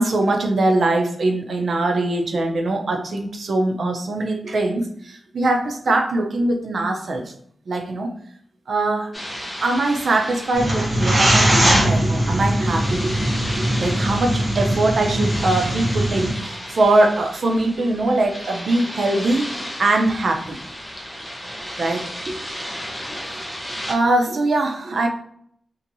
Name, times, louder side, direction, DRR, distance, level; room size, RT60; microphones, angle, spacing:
voice 1, 0.0-7.3 7.7-8.1 8.7-9.1 9.6-19.5 19.8-20.6 21.7-22.5 23.1-23.2 23.7-25.1, right 2 dB, 65° right, 3 dB, 0.5 m, -22 dB
sound 1, 9.1-23.9, equal, 10° left, 0.7 m, -34 dB
sound 2, 10.5-16.3, right 1 dB, 30° right, 0.9 m, -20 dB
2.8 x 2.6 x 2.6 m, 0.66 s
wide cardioid pair, 105°, 0 cm